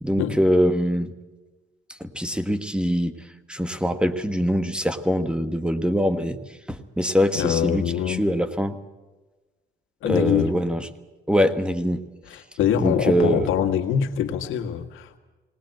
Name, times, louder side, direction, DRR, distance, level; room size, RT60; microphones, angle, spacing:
voice 1, 0.0-1.1 2.0-3.2 3.5-6.4 7.0-8.7 10.0-10.8 11.3-12.0 12.8-13.5, equal, 5° right, 9 dB, 1.4 m, -23 dB
voice 2, 7.3-8.2 10.0-10.5 12.3-15.2, left 9 dB, 85° left, 5 dB, 1.8 m, -24 dB
20.0 x 19.5 x 7.9 m, 1.2 s
cardioid pair, 90°, 20 cm